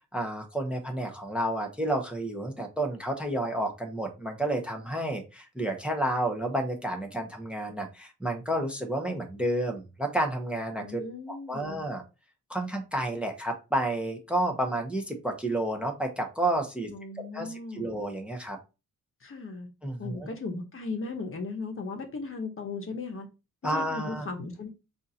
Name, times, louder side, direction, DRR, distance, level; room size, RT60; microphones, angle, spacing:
voice 1, 0.1-11.0 11.3-12.0 12.5-16.9 17.2-18.6 19.8-20.3 23.6-24.3, right 1 dB, 5° right, 0.7 m, -30 dB
voice 2, 10.8-11.9 16.9-18.0 19.2-19.7 20.0-23.3 23.6-24.7, left 3 dB, 40° left, 0.9 m, -37 dB
5.3 x 2.5 x 2.7 m
cardioid pair, 115°, 31 cm